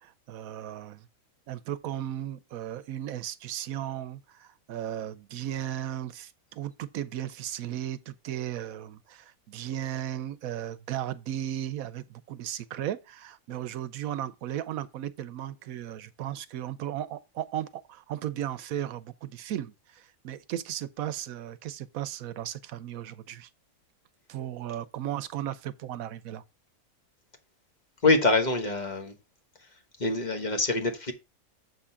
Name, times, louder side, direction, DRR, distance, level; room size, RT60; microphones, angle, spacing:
voice 1, 0.0-1.1 1.5-23.5 24.3-26.4, right 11 dB, 80° right, 1.1 m, -35 dB
voice 2, 28.0-29.2 30.0-31.1, left 2 dB, 35° left, 1.3 m, -25 dB
7.5 x 3.7 x 5.6 m
omnidirectional pair, 1.5 m